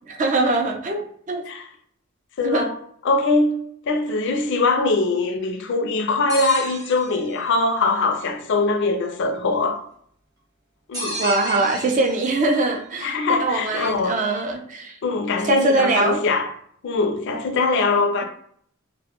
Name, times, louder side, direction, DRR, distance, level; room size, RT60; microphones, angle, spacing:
voice 1, 0.1-1.4 2.4-2.7 11.2-15.0 15.5-16.2, right 2 dB, 40° right, 0.4 m, -22 dB
voice 2, 2.4-2.8 3.0-9.8 10.9-11.2 13.0-14.2 15.0-16.5 16.8-18.2, left 3 dB, 60° left, 0.4 m, -22 dB
sound 1, 6.3-7.6 10.9-12.5, equal, 20° right, 0.8 m, -33 dB
2.1 x 2.1 x 2.8 m
head